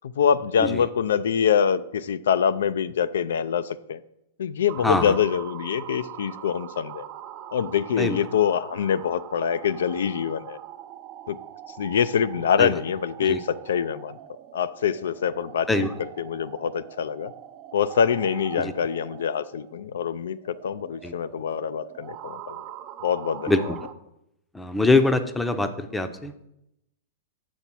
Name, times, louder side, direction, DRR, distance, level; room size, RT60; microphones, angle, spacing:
voice 1, 0.0-4.0 4.4-7.1 7.5-10.6 11.3-11.4 11.8-14.2 14.5-15.9 16.2-17.3 17.7-22.6 23.0-23.7, left 7 dB, 80° left, 14 dB, 0.3 m, -25 dB
sound 1, 4.7-23.9, right 11 dB, 40° right, 0.5 m, -42 dB
voice 2, 4.8-5.1 8.0-8.2 12.6-12.7 13.2-13.4 15.7-15.9 18.6-18.7 21.0-21.1 23.5-23.6 24.5-26.5, left 2 dB, 5° left, 9 dB, 0.6 m, -23 dB
6.7 x 4.2 x 6.0 m, 0.83 s
hypercardioid pair, 120°, 0 cm